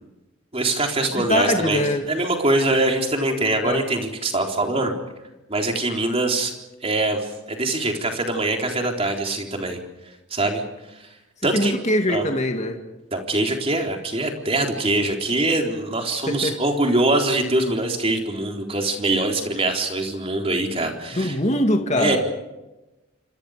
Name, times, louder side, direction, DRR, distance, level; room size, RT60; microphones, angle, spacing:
voice 1, 0.5-4.9 5.5-6.5 6.8-9.8 10.3-10.6 10.9-11.1 11.4-11.7 12.1-12.3 13.1-21.4 22.0-22.2, right 2 dB, 30° right, 2 dB, 3.9 m, -23 dB
voice 2, 1.1-2.0 3.6-3.8 11.5-12.8 16.3-16.6 21.1-22.2, left 1 dB, 35° left, 4 dB, 2.3 m, -22 dB
27.5 x 26.5 x 5.1 m, 1.0 s
head